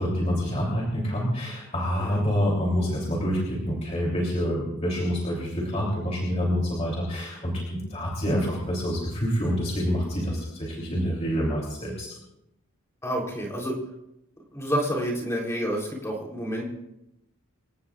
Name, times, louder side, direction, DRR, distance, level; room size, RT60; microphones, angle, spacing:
voice 1, 0.0-12.1, equal, 30° left, -4 dB, 3.4 m, -27 dB
voice 2, 13.0-13.8 14.5-16.7, equal, 15° left, -1 dB, 3.8 m, -29 dB
27.0 x 17.0 x 2.5 m, 0.86 s
head